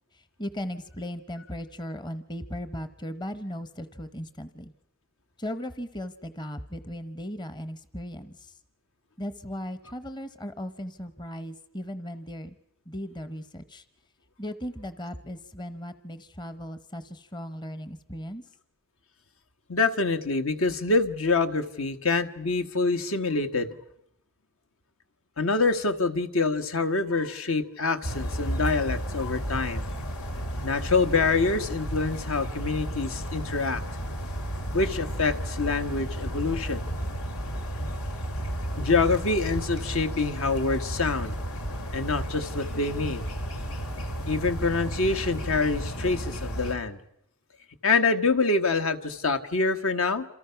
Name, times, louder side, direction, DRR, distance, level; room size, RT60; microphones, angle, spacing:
voice 1, 0.1-4.7 5.4-8.6 9.2-12.6 12.9-13.8 14.4-18.5, equal, 20° left, 12 dB, 0.9 m, -37 dB
voice 2, 19.7-23.8 25.4-29.9 30.6-33.8 34.7-36.8 38.7-41.3 41.9-43.2 44.3-47.0 47.8-50.3, left 3 dB, 70° left, 8 dB, 1.5 m, -26 dB
sound 1, 28.0-46.8, right 1 dB, 85° left, 3.0 m, -33 dB
27.5 x 27.5 x 5.9 m, 0.78 s
head